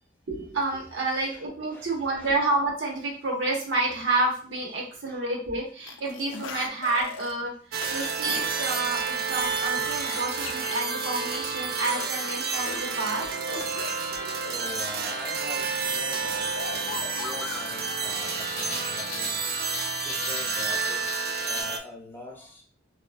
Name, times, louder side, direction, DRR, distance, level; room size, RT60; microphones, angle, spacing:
voice 1, 0.3-13.7 14.2-14.4, right 2 dB, 75° right, -1 dB, 0.9 m, -29 dB
sound 1, 5.9-7.3 7.8-8.7 9.1-10.8 11.8-13.9 16.6-21.6, left 6 dB, 85° left, 0.4 m, -39 dB
sound 2, 7.7-21.8, right 5 dB, 50° right, 0.3 m, -30 dB
voice 2, 8.5-8.9 10.0-10.2 11.6-11.8 14.4-19.4 19.9-21.2 21.4-22.6, left 2 dB, 10° left, -2 dB, 0.6 m, -44 dB
2.9 x 2.2 x 2.4 m, 0.43 s
head